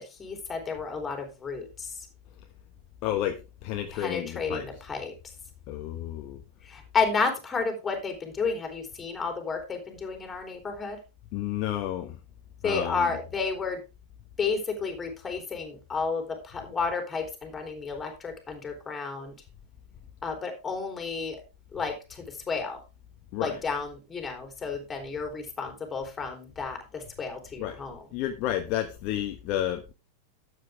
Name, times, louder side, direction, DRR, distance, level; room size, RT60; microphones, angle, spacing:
voice 1, 0.0-1.9 3.9-5.1 6.6-11.0 12.6-13.8 14.4-19.3 20.2-21.4 21.7-22.8 23.4-28.0, left 4 dB, 15° left, 4 dB, 3.6 m, -32 dB
voice 2, 3.0-4.8 5.7-6.4 11.3-12.2 12.6-13.1 23.3-23.6 27.6-27.8 28.1-29.9, left 12 dB, 40° left, 5 dB, 1.1 m, -31 dB
12.5 x 8.1 x 3.5 m, 0.29 s
figure-of-eight pair, 90°, 0 cm